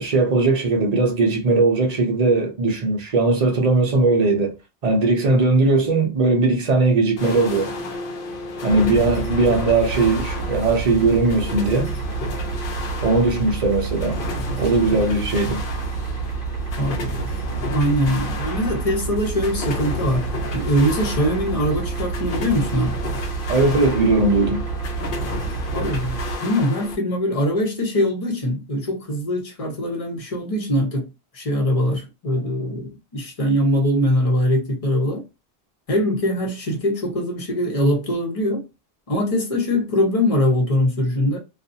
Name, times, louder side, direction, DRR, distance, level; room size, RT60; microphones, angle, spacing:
voice 1, 0.0-4.5 4.8-7.7 8.6-11.9 13.0-14.2 14.6-15.6 23.5-24.6, right 3 dB, 45° right, 0.7 m, -19 dB
sound 1, 7.2-27.0, left 3 dB, 60° left, 0.8 m, -32 dB
sound 2, 8.7-26.4, right 5 dB, 65° right, 1.0 m, -29 dB
voice 2, 16.8-17.2 17.5-20.2 20.5-23.0 25.7-31.1 31.3-35.2 35.9-38.6 39.1-41.4, left 1 dB, 35° left, 0.9 m, -22 dB
2.5 x 2.4 x 2.7 m
omnidirectional pair, 1.0 m